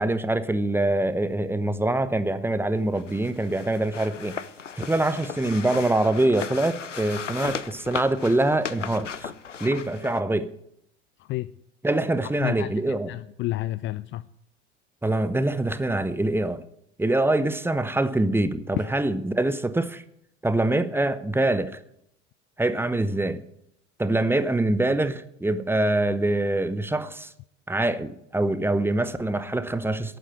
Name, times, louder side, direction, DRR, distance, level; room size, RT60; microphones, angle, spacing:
voice 1, 0.0-4.4 4.8-9.3 9.6-10.5 11.8-13.2 15.0-16.6 17.0-20.0 20.4-21.8 22.6-23.4 24.0-27.3 27.7-30.2, right 2 dB, 5° right, 0.9 m, -24 dB
sound 1, 2.9-10.2, left 7 dB, 90° left, 0.6 m, -36 dB
voice 2, 12.4-14.2 18.7-18.9, left 16 dB, 35° left, 0.4 m, -30 dB
11.5 x 8.9 x 9.4 m
figure-of-eight pair, 70°, 36 cm